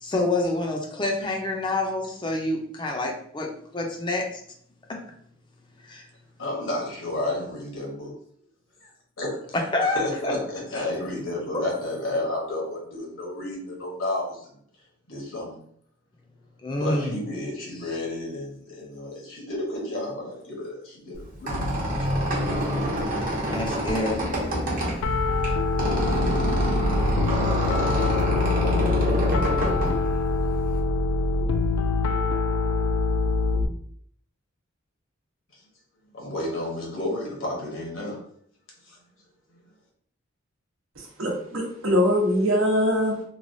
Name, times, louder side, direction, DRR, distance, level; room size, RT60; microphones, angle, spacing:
voice 1, 0.0-4.3 5.9-6.0 9.7-10.3 10.7-10.8 11.5-11.6 16.6-17.2 23.5-24.2, left 2 dB, 20° left, 1 dB, 0.5 m, -27 dB
voice 2, 6.4-8.1 8.8-8.9 9.2-9.6 9.9-14.5 15.1-15.5 16.8-22.2 36.1-38.2 38.9-39.0 39.5-39.6, left 1 dB, 70° left, -2 dB, 1.0 m, -32 dB
Squeak, 21.1-30.8, equal, 40° right, 0.8 m, -27 dB
Piano, 25.0-33.7, left 3 dB, 90° left, 0.3 m, -24 dB
voice 3, 41.0-43.2, equal, 75° right, 0 dB, 0.8 m, -23 dB
3.1 x 2.3 x 2.6 m, 0.65 s
head